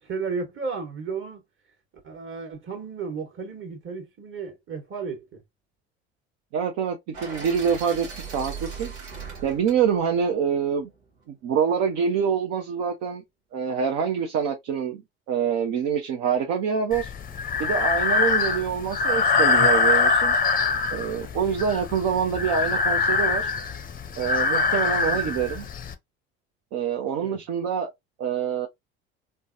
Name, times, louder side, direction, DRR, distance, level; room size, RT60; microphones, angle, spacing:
voice 1, 0.1-1.4 2.0-5.4 25.1-25.4 27.2-27.4, right 5 dB, 40° right, 1.4 m, -34 dB
voice 2, 6.5-8.1 8.3-8.9 9.4-10.9 11.3-13.2 13.5-15.0 15.3-17.1 17.6-20.3 20.9-23.5 24.2-25.6 26.7-27.9 28.2-28.7, right 7 dB, 55° right, 0.7 m, -25 dB
sound 1, 7.1-11.2, right 5 dB, 85° right, 1.1 m, -39 dB
Breathing, 16.9-25.9, left 4 dB, 25° left, 0.6 m, -23 dB
3.3 x 2.1 x 2.6 m
hypercardioid pair, 65°, 33 cm